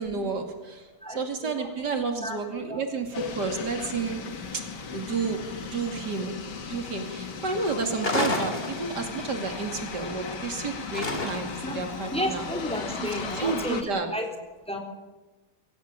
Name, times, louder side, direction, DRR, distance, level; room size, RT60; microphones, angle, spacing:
voice 1, 0.0-4.2 4.5-4.6 4.9-6.4 6.7-12.4 13.0-13.1 13.3-14.1, right 4 dB, 80° right, 4 dB, 3.3 m, -31 dB
voice 2, 1.0-1.6 2.2-2.4 2.7-2.8 6.2-6.3 10.2-10.4 10.8-10.9 11.6-11.8 12.1-14.3 14.7-14.8, left 1 dB, 5° left, 2 dB, 3.6 m, -32 dB
sound 1, 3.1-13.8, left 6 dB, 85° left, 2.4 m, -37 dB
sound 2, 8.0-9.2 10.9-11.7, left 2 dB, 35° left, 3.1 m, -29 dB
24.0 x 16.5 x 8.7 m, 1.2 s
omnidirectional pair, 1.8 m